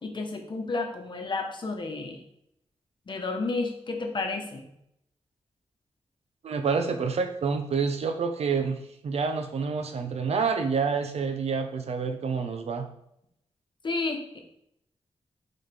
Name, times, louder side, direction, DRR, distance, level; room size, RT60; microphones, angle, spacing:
voice 1, 0.0-2.2 3.1-4.6 13.8-14.4, left 3 dB, 45° left, 3 dB, 1.0 m, -31 dB
voice 2, 6.4-12.9, right 5 dB, 70° right, 6 dB, 0.7 m, -28 dB
6.4 x 4.2 x 3.4 m, 0.75 s
wide cardioid pair, 110°, 11 cm